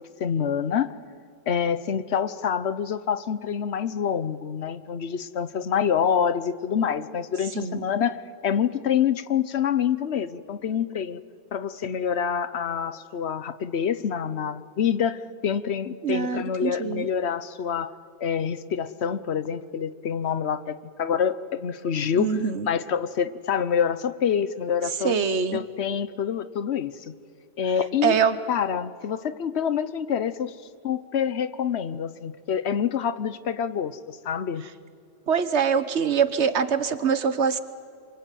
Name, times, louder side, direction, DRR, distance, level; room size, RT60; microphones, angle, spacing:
voice 1, 0.2-0.9 1.5-8.2 8.4-11.2 11.5-17.9 18.2-25.1 25.5-27.1 27.6-28.1 28.5-30.5 30.8-34.6, left 7 dB, 75° left, 14 dB, 1.1 m, -26 dB
voice 2, 16.0-17.0 22.2-22.7 25.0-25.6 28.0-28.4 35.3-37.6, right 6 dB, 80° right, 12 dB, 1.4 m, -24 dB
27.0 x 23.5 x 9.2 m, 2.3 s
omnidirectional pair, 1.1 m